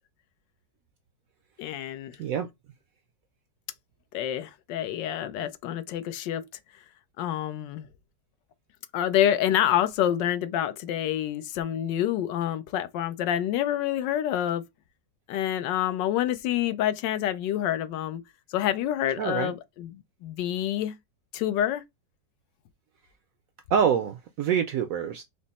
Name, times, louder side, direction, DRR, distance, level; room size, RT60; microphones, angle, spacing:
voice 1, 1.6-2.2 4.1-6.5 7.2-7.9 8.9-14.6 15.3-18.2 18.5-20.9 21.3-21.8, left 11 dB, 90° left, 1.3 m, -27 dB
voice 2, 19.2-19.5 23.7-25.2, right 7 dB, 70° right, 0.8 m, -25 dB
5.1 x 2.0 x 4.1 m
omnidirectional pair, 1.9 m